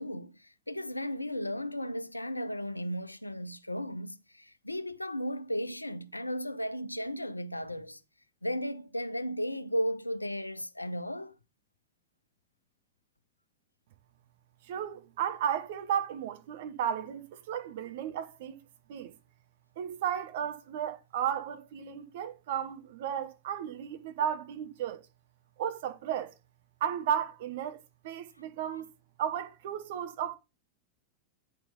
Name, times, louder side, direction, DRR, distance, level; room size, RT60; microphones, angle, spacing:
voice 1, 0.0-8.0 8.4-11.4 28.7-28.8, equal, 85° left, 0.5 m, -35 dB
voice 2, 14.6-18.6 18.9-19.1 19.8-25.0 25.6-26.3 26.8-28.9 29.2-30.3, right 9 dB, 55° right, 1.0 m, -34 dB
9.4 x 4.3 x 5.2 m
figure-of-eight pair, 90°, 0 cm